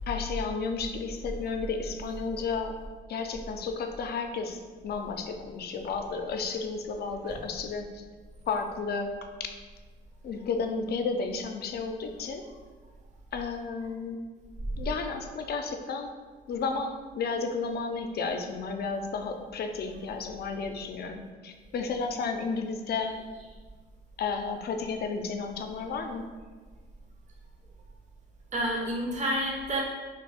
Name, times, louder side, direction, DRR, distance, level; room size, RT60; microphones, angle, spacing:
voice 1, 0.1-2.7 3.1-8.0 8.5-9.1 10.2-12.4 13.3-14.2 14.8-16.1 16.5-23.1 24.2-26.3, left 4 dB, 55° left, 5 dB, 0.4 m, -32 dB
voice 2, 23.1-23.5 25.7-26.2 28.5-29.8, right 1 dB, 35° right, -2 dB, 0.7 m, -31 dB
3.0 x 2.4 x 3.4 m, 1.4 s
cardioid pair, 90°, 20 cm